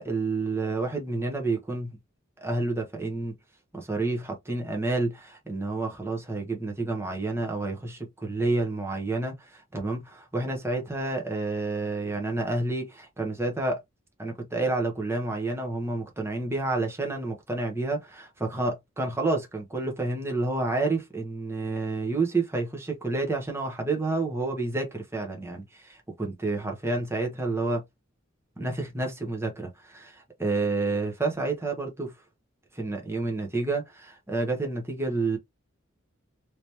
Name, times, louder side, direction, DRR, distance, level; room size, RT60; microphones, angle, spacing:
voice 1, 0.0-1.9 2.4-3.3 3.7-13.8 14.2-27.8 28.6-32.1 32.7-35.4, right 2 dB, 15° right, 0.9 m, -29 dB
3.3 x 2.9 x 2.8 m
head